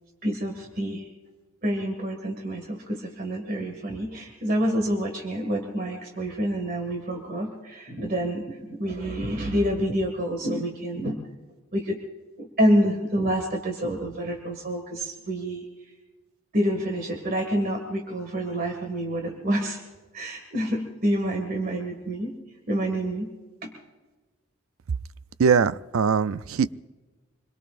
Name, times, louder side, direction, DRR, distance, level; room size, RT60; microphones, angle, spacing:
voice 1, 0.2-1.0 1.6-11.2 11.7-12.0 12.4-15.6 16.5-19.8 20.1-22.3 22.7-23.3 23.6-23.7, equal, 45° right, 2 dB, 2.0 m, -27 dB
voice 2, 25.4-26.7, right 6 dB, 85° right, 15 dB, 0.4 m, -21 dB
26.0 x 22.0 x 2.5 m, 1.2 s
head